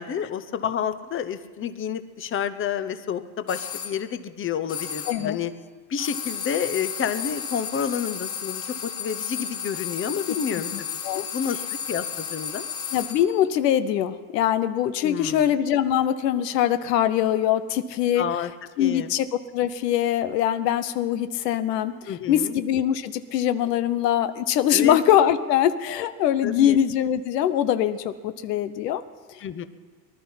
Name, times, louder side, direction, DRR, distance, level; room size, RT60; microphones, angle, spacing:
voice 1, 0.0-5.5 5.9-10.9 11.1-11.6 11.9-12.7 15.0-15.5 18.2-18.5 18.8-19.1 22.1-22.6 24.7-25.0 26.4-26.8 29.4-29.6, left 8 dB, 25° left, 12 dB, 0.8 m, -29 dB
sound 1, 3.5-4.0 4.7-5.3 6.0-13.3, left 7 dB, 50° left, 2.5 m, -33 dB
voice 2, 5.1-5.4 10.7-11.3 12.9-18.2 18.8-19.3 19.5-29.0 29.3-29.4, left 10 dB, 85° left, 12 dB, 0.8 m, -23 dB
19.5 x 11.5 x 5.6 m, 1.4 s
supercardioid pair, 90°, 47 cm